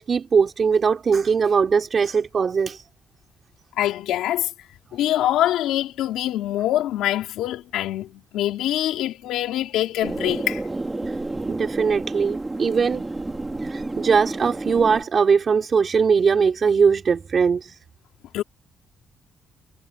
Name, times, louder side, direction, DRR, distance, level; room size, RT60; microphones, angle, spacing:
voice 1, 0.0-2.8 11.1-11.2 11.5-13.0 13.6-17.8, right 6 dB, 45° right, 3.0 m, -20 dB
voice 2, 3.8-4.5 4.9-10.6 18.3-18.4, left 13 dB, 90° left, 4.1 m, -24 dB
sound 1, 10.0-15.0, right 2 dB, 20° right, 2.1 m, -30 dB
cardioid pair, 90°, 0 cm